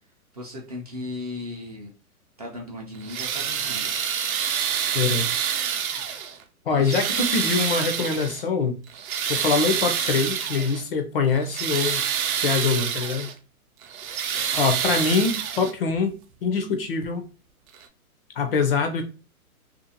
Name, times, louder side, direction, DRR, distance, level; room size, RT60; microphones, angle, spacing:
voice 1, 0.3-1.9 2.4-3.9 4.9-5.1 6.7-7.0 14.3-14.7, left 2 dB, 30° right, 0.3 m, -37 dB
sound 1, 3.0-6.4 6.8-8.4 8.9-10.8 11.3-13.3 13.8-15.9 17.0-17.1 17.7-17.8, right 8 dB, 65° right, 0.6 m, -27 dB
voice 2, 4.9-5.3 6.7-8.8 9.3-12.0 12.4-13.3 14.6-16.1 16.4-17.2 18.4-19.0, left 5 dB, 40° left, 0.4 m, -24 dB
2.5 x 2.4 x 2.7 m
hypercardioid pair, 140°, 45 cm